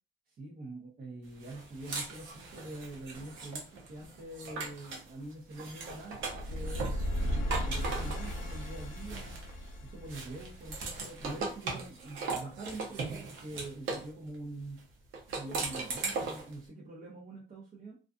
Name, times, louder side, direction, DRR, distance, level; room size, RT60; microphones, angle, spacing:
voice 1, 0.4-9.4 9.8-14.8 15.3-18.0, right 2 dB, 50° right, -4 dB, 0.8 m, -45 dB
sound 1, 1.4-5.1 5.5-9.7 10.1-14.1 15.1-16.5, right 3 dB, 80° right, 0.7 m, -39 dB
sound 2, 6.2-11.3, equal, 80° left, 0.5 m, -36 dB
2.5 x 2.4 x 2.3 m, 0.33 s
cardioid pair, 90°, 20 cm